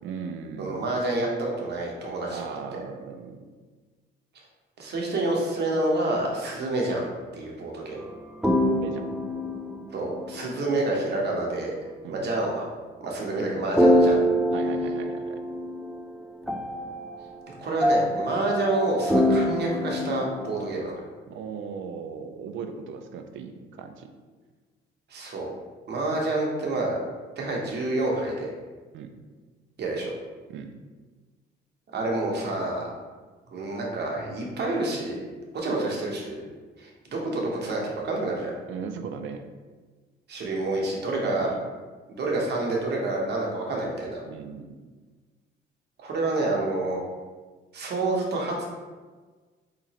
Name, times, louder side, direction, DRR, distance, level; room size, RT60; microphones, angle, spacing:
voice 1, 0.0-0.9 2.3-3.5 8.6-9.1 12.0-12.3 14.5-15.4 21.3-24.1 28.9-29.1 30.5-30.8 38.7-39.5 41.2-41.7 44.3-44.9, right 6 dB, 75° right, 7 dB, 0.4 m, -38 dB
voice 2, 0.6-2.5 4.8-7.1 7.3-8.0 9.9-11.7 12.1-12.7 13.0-14.2 17.6-20.9 25.1-25.5 25.9-27.0 27.4-28.5 29.8-30.1 31.9-32.9 33.5-35.2 35.5-36.4 36.8-38.5 40.3-41.5 42.1-44.2 46.0-47.0 47.7-48.5, right 2 dB, 55° right, -1 dB, 0.9 m, -28 dB
sound 1, 8.4-10.7 13.8-16.0 16.5-20.7, equal, ahead, 0.3 m, -25 dB
3.6 x 3.0 x 2.8 m, 1.4 s
cardioid pair, 90°, 20 cm